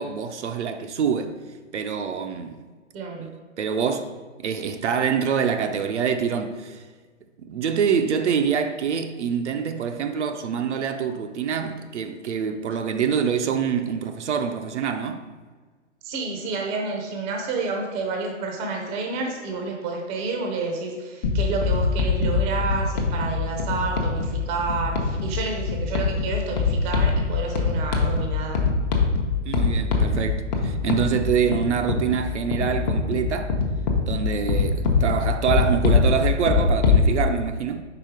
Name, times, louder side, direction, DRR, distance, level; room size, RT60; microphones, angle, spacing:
voice 1, 0.0-1.4 1.7-2.6 3.2-3.3 3.6-4.1 4.4-6.8 7.4-15.2 29.4-33.5 34.0-37.8, right 7 dB, 65° right, 0.6 m, -25 dB
voice 2, 2.9-3.3 16.0-28.6, right 4 dB, 15° right, 0.6 m, -29 dB
sound 1, 21.2-37.1, left 4 dB, 35° left, 0.8 m, -23 dB
4.8 x 4.2 x 4.9 m
hypercardioid pair, 135°, 38 cm